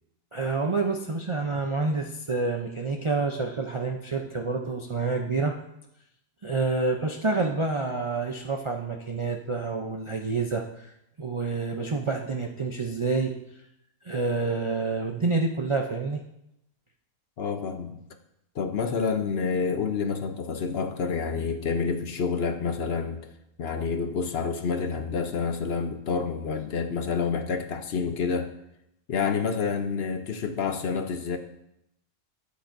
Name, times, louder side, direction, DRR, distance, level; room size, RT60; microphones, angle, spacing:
voice 1, 0.3-5.5 6.4-10.9 11.2-13.3 14.0-16.2, right 3 dB, 40° right, 1 dB, 0.4 m, -28 dB
voice 2, 17.4-18.0 18.5-23.3 23.6-28.5 29.1-31.4, left 5 dB, 55° left, 7 dB, 0.9 m, -28 dB
13.0 x 8.6 x 2.6 m, 0.80 s
omnidirectional pair, 1.4 m